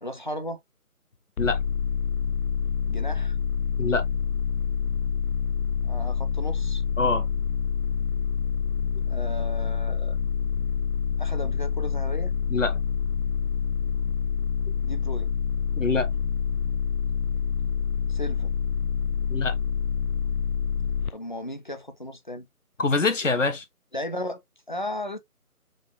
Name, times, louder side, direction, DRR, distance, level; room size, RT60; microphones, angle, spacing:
voice 1, 0.0-0.6 2.9-3.4 5.8-6.8 9.1-10.2 11.2-12.3 14.8-15.3 18.1-18.5 21.1-22.5 23.9-25.2, left 1 dB, 35° left, 0.6 m, -35 dB
sound 1, 1.4-21.1, left 7 dB, 75° left, 0.6 m, -27 dB
voice 2, 15.8-16.1 19.3-19.6 22.8-23.6, left 3 dB, 55° left, 1.0 m, -24 dB
5.2 x 2.6 x 3.4 m
figure-of-eight pair, 160°, 44 cm